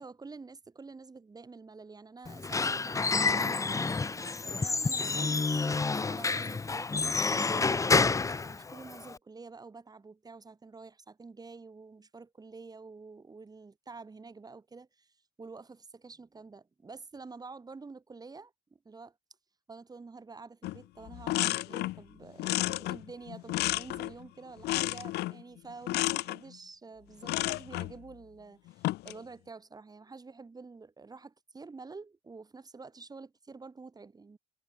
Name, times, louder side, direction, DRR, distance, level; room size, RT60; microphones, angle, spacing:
voice 1, 0.0-19.1 19.7-34.4, right 4 dB, 20° right, 4.5 m, -48 dB
Squeak / Wood, 2.3-9.2, left 4 dB, 20° left, 0.9 m, -29 dB
sound 1, 20.6-20.8 21.1-22.0 22.4-24.2 24.6-25.4 25.9-26.4 27.2-27.9 28.7-29.2, left 17 dB, 80° left, 0.9 m, -31 dB
cardioid pair, 110°, 17 cm